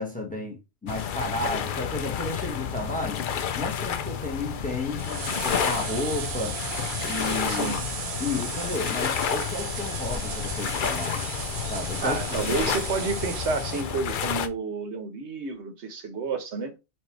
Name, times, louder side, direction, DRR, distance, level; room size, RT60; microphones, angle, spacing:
voice 1, 0.0-3.2 3.5-6.6 7.0-7.7 8.2-11.3 11.7-12.7 13.0-13.1, left 2 dB, 5° left, 1.1 m, -32 dB
sound 1, 0.9-14.5, left 8 dB, 55° left, 0.6 m, -30 dB
sound 2, 5.0-14.3, right 7 dB, 50° right, 0.4 m, -36 dB
voice 2, 7.5-7.9 12.0-16.7, right 4 dB, 80° right, 1.2 m, -30 dB
4.4 x 2.6 x 4.5 m
omnidirectional pair, 1.2 m